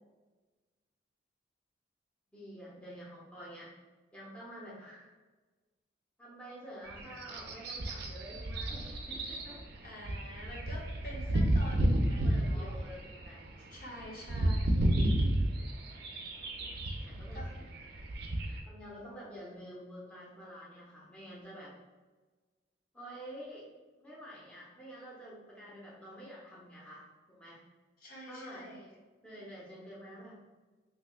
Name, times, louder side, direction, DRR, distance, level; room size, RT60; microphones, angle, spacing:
voice 1, 2.3-3.7 4.1-5.1 6.2-9.6 12.2-13.4 17.0-17.5 18.7-21.7 22.9-23.7 24.0-27.6 28.3-28.7 29.2-30.4, equal, 5° left, -7 dB, 0.8 m, -48 dB
sound 1, 6.9-18.6, right 1 dB, 60° right, 0.5 m, -31 dB
voice 2, 9.8-12.8 13.7-14.9 16.9-17.5 28.0-28.9, equal, 55° left, -3 dB, 0.9 m, -47 dB
3.3 x 3.1 x 2.4 m, 1.3 s
head